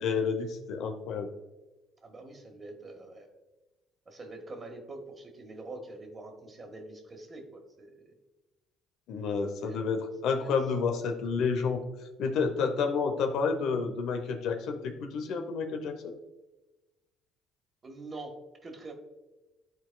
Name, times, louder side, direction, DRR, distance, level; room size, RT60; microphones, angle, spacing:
voice 1, 0.0-1.3 9.1-11.8 12.2-16.1, left 5 dB, 70° left, 6 dB, 0.7 m, -30 dB
voice 2, 2.0-3.3 4.1-8.1 9.4-11.4 17.8-18.9, right 2 dB, 30° right, 3 dB, 1.4 m, -45 dB
11.5 x 4.0 x 2.2 m, 1.1 s
supercardioid pair, 85°, 0 cm